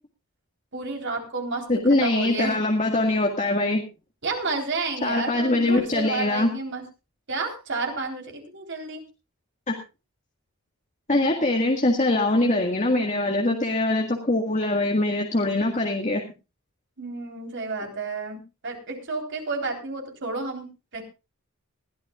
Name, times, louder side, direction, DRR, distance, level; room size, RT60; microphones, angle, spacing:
voice 1, 0.7-1.6 2.0-2.6 4.2-6.8 7.3-9.0 17.0-20.7 20.9-21.0, right 3 dB, 55° right, 3 dB, 3.9 m, -31 dB
voice 2, 1.7-3.8 5.0-6.5 9.7-9.8 11.1-16.2, left 2 dB, 35° left, 2 dB, 1.8 m, -23 dB
20.5 x 14.0 x 2.4 m, 0.29 s
head